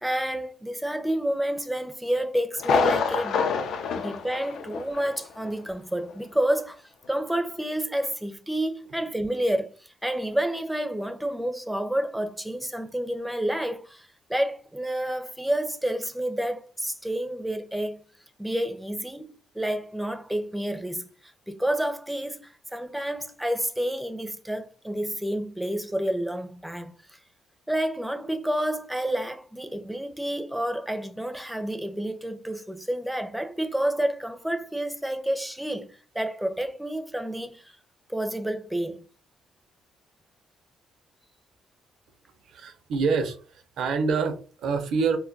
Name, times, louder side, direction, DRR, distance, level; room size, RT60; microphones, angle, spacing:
voice 1, 0.0-3.5 3.9-18.0 18.4-27.2 27.7-37.8 38.1-39.0, right 1 dB, 5° right, 0.5 m, -29 dB
Thunder, 2.6-5.2 5.4-5.5 6.1-6.2, left 5 dB, 70° left, 0.4 m, -26 dB
voice 2, 42.5-45.2, right 5 dB, 70° right, 0.5 m, -26 dB
2.2 x 2.2 x 3.8 m
cardioid pair, 100°, 0 cm